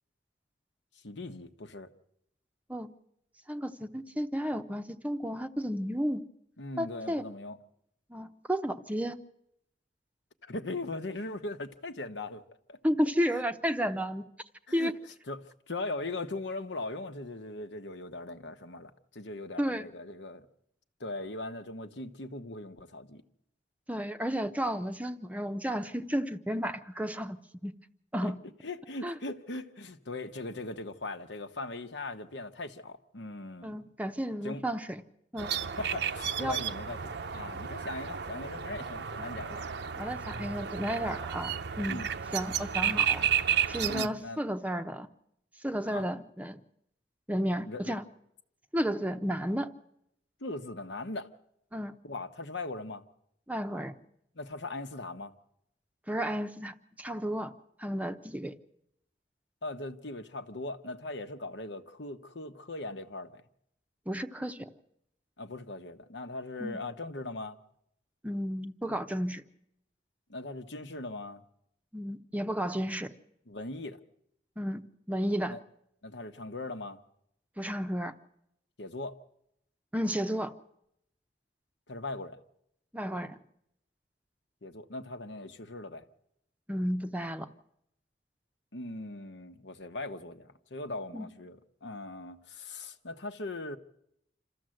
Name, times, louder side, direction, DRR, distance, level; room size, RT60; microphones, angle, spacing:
voice 1, 1.0-1.9 6.6-7.6 10.4-12.8 13.3-13.4 14.7-14.9 15.3-20.5 21.0-23.2 28.2-28.3 28.6-33.8 34.4-34.6 35.8-39.6 41.9-42.1 43.9-44.4 45.9-46.0 47.6-47.9 50.4-51.3 52.0-53.0 54.3-55.3 59.6-63.4 65.4-67.6 70.3-71.4 73.5-74.0 75.5-75.6 76.0-77.0 78.8-79.2 81.9-82.4 84.6-86.1 88.7-93.8, left 2 dB, 75° left, 1.2 m, -39 dB
voice 2, 3.5-6.2 6.8-7.2 8.1-9.2 12.8-14.3 14.7-15.0 19.6-19.9 23.9-27.7 28.1-28.4 29.0-29.1 33.6-35.0 35.3-35.5 36.4-36.6 39.5-39.6 40.0-42.0 42.3-43.3 43.7-45.1 45.6-46.6 47.3-48.0 48.7-49.7 51.7-52.0 53.5-54.0 56.1-57.5 57.8-58.6 64.1-64.7 66.6-66.8 68.2-69.4 71.9-73.1 74.6-74.8 75.1-75.6 77.6-78.1 79.9-80.5 82.9-83.4 86.7-87.5 91.1-91.3, equal, 10° right, 0.7 m, -32 dB
sound 1, 35.4-44.1, right 8 dB, 65° right, 0.7 m, -32 dB
27.0 x 14.0 x 7.8 m
head